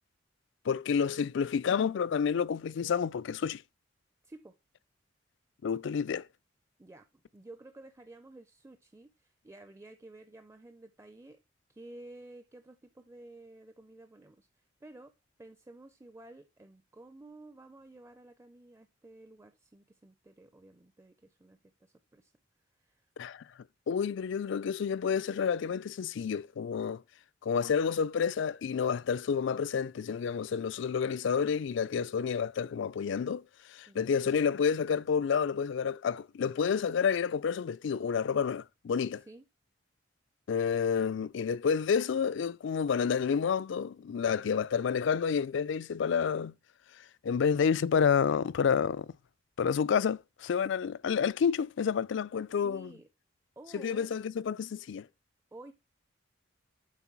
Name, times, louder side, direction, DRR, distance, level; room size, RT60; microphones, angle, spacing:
voice 1, 0.6-3.6 5.6-6.3 23.2-23.4 23.9-27.0 27.4-39.2 40.5-46.5 47.0-49.1 49.6-52.9 53.7-55.1, left 6 dB, 70° left, 0.4 m, -29 dB
voice 2, 4.2-4.5 6.8-11.4 11.7-15.1 15.4-22.3 22.8-23.3 33.9-34.1 39.3-39.5 52.5-53.1 53.6-54.1 55.5-55.7, right 2 dB, 15° right, 0.5 m, -52 dB
8.3 x 3.8 x 5.9 m
head